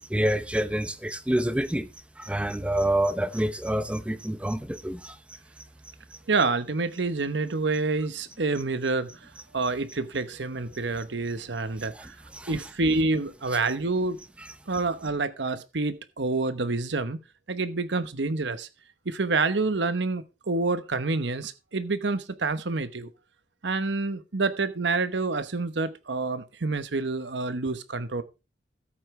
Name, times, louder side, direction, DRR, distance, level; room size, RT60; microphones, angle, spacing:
voice 1, 0.1-1.9 2.2-5.2 9.6-9.7 11.8-12.8 13.7-13.8 14.7-14.8, right 1 dB, 5° right, 0.7 m, -28 dB
voice 2, 6.3-12.2 12.5-14.2 14.7-17.2 17.5-18.7 19.1-23.1 23.6-28.2, right 3 dB, 75° right, 1.0 m, -28 dB
14.0 x 8.6 x 3.3 m
head